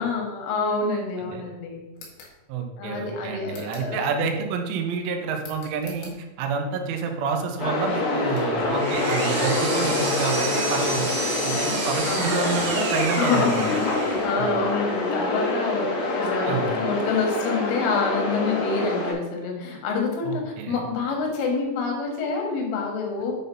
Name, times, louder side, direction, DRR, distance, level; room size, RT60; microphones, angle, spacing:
voice 1, 0.0-1.9 2.8-4.2 12.0-12.4 13.2-23.3, left 4 dB, 85° left, 1 dB, 3.9 m, -27 dB
sound 1, 1.9-2.4 3.5-4.0 5.4-6.2, left 4 dB, 70° left, 3.7 m, -45 dB
voice 2, 2.5-11.1 11.4-13.7 16.5-16.7 20.2-20.8, right 5 dB, 90° right, 4 dB, 3.4 m, -28 dB
sound 2, 7.6-19.1, left 2 dB, 35° left, 3.1 m, -26 dB
Power tool, 8.4-14.4, right 2 dB, 55° right, 1.9 m, -30 dB
8.7 x 4.1 x 5.3 m, 1.1 s
omnidirectional pair, 5.4 m